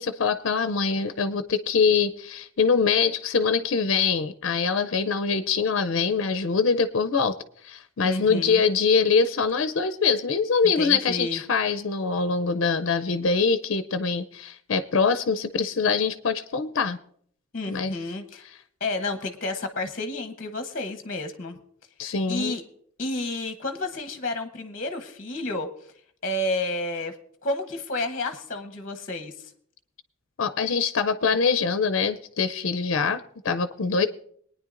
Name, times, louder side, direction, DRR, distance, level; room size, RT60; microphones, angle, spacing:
voice 1, 0.0-7.3 7.6-17.0 17.7-18.0 22.0-22.6 30.4-34.1, left 5 dB, 60° left, 12 dB, 0.5 m, -24 dB
voice 2, 8.0-8.6 10.8-11.4 17.5-18.4 18.8-21.6 22.3-22.6 23.0-25.7 26.2-27.2 27.4-29.5, left 2 dB, 40° left, 7 dB, 0.8 m, -30 dB
22.0 x 9.7 x 2.5 m, 0.62 s
head